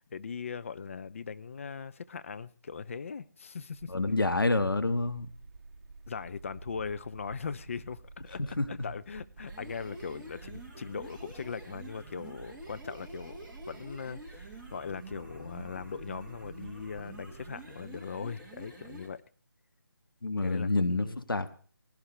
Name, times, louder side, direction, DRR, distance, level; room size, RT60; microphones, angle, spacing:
voice 1, 0.1-3.9 6.1-19.2 20.4-21.2, left 6 dB, 35° left, 0.6 m, -40 dB
sound 1, 3.7-17.6, right 3 dB, 35° right, 1.9 m, -50 dB
voice 2, 3.9-5.3 8.6-8.9 20.2-21.5, left 2 dB, 75° left, 1.7 m, -28 dB
sound 2, 9.4-19.2, right 2 dB, 5° right, 1.7 m, -49 dB
19.5 x 16.5 x 3.3 m
figure-of-eight pair, 155°, 12 cm